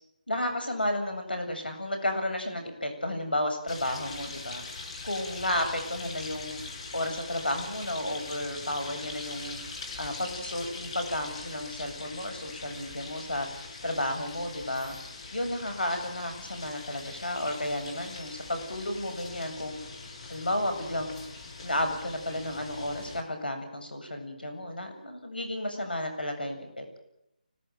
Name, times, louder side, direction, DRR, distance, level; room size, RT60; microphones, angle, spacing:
voice 1, 0.3-4.6 5.0-6.6 6.9-9.6 10.0-13.5 13.8-15.0 15.3-19.8 20.3-21.2 21.6-27.0, left 1 dB, 85° left, 6 dB, 7.8 m, -32 dB
sound 1, 3.7-23.2, left 3 dB, 40° left, 5.8 m, -42 dB
26.0 x 18.0 x 9.4 m, 0.82 s
figure-of-eight pair, 155°, 5 cm